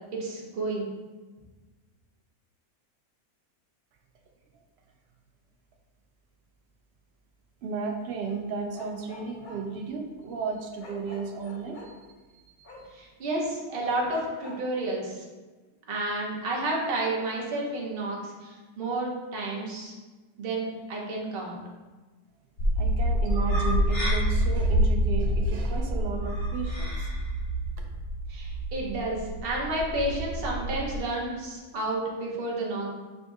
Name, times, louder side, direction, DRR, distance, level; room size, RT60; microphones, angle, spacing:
voice 1, 0.1-0.9 12.9-15.2 15.9-19.9 20.4-21.6 28.3-32.9, right 2 dB, 45° right, -2 dB, 0.9 m, -31 dB
voice 2, 7.6-12.1 12.6-12.9 13.9-14.0 22.8-27.1 27.8-27.9, right 4 dB, 75° right, 1 dB, 0.5 m, -34 dB
Bark, 8.7-9.6 10.8-11.9 12.6-12.8 13.8-14.6, left 1 dB, 50° left, 0.6 m, -46 dB
sound 1, 22.6-31.0, equal, 90° left, 1.9 m, -27 dB
6.0 x 2.6 x 2.3 m, 1.3 s
omnidirectional pair, 1.6 m